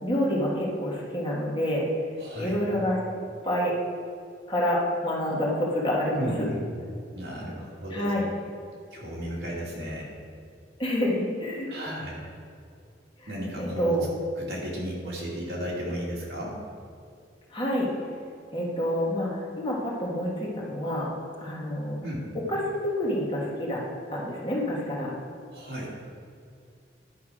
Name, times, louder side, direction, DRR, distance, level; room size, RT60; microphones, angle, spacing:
voice 1, 0.0-1.9 2.4-3.8 4.5-6.5 7.9-8.3 10.8-11.7 13.2-13.3 13.6-14.1 17.5-17.9 18.5-19.3 19.6-21.1 21.4-22.0 22.5-23.8 24.1-25.1, equal, 25° left, -4 dB, 1.6 m, -28 dB
voice 2, 2.2-2.6 6.2-6.6 7.1-8.1 8.9-10.1 11.7-12.3 13.3-13.9 14.4-16.6 22.0-22.3 25.5-25.9, equal, 65° right, -4 dB, 2.5 m, -34 dB
11.0 x 5.9 x 4.9 m, 2.4 s
head